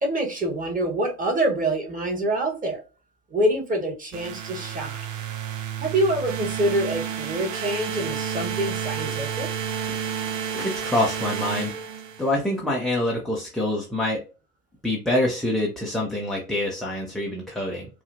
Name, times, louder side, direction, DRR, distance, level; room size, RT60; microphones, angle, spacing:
voice 1, 0.0-2.8 3.3-5.0 5.8-9.5, right 1 dB, 15° right, 1 dB, 1.4 m, -26 dB
sound 1, 4.1-12.4, right 8 dB, 55° right, 0.9 m, -31 dB
voice 2, 10.5-11.7 12.2-14.2 14.8-17.9, left 1 dB, ahead, -3 dB, 0.6 m, -26 dB
4.7 x 2.3 x 2.6 m, 0.32 s
hypercardioid pair, 95°, 45 cm